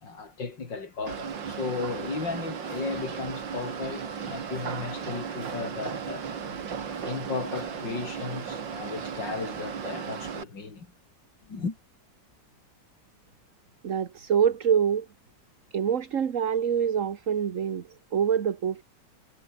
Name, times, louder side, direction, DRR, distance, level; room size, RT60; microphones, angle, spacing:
voice 1, 0.0-6.3 7.0-10.9 11.5-11.8, left 4 dB, 75° left, 4.2 m, -35 dB
sound 1, 1.0-2.2 2.6-9.1, left 2 dB, 50° left, 6.1 m, -51 dB
sound 2, 1.1-10.4, right 7 dB, 90° right, 2.6 m, -36 dB
voice 2, 13.8-15.1 15.7-18.8, right 8 dB, 50° right, 1.5 m, -25 dB
omnidirectional pair, 2.0 m